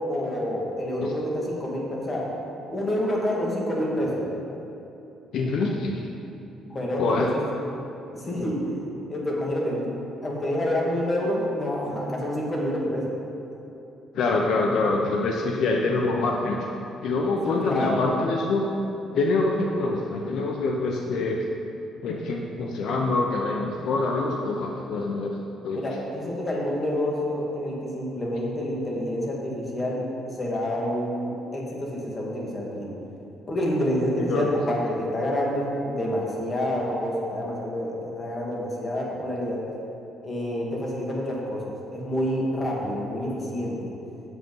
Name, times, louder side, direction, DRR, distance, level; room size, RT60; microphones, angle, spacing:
voice 1, 0.0-2.3 2.7-4.2 6.7-7.4 8.1-8.8 9.1-9.9 10.2-13.1 17.4-18.1 25.7-30.0 30.3-32.9 33.5-39.7 40.2-43.9, equal, 30° left, -3 dB, 2.0 m, -28 dB
voice 2, 5.3-6.1 7.0-7.3 14.1-16.7 17.0-18.7 19.1-21.4 22.0-25.4 25.6-25.8 34.3-34.4, left 3 dB, 70° left, 0 dB, 0.8 m, -25 dB
8.3 x 7.4 x 5.4 m, 2.9 s
cardioid pair, 115°, 0 cm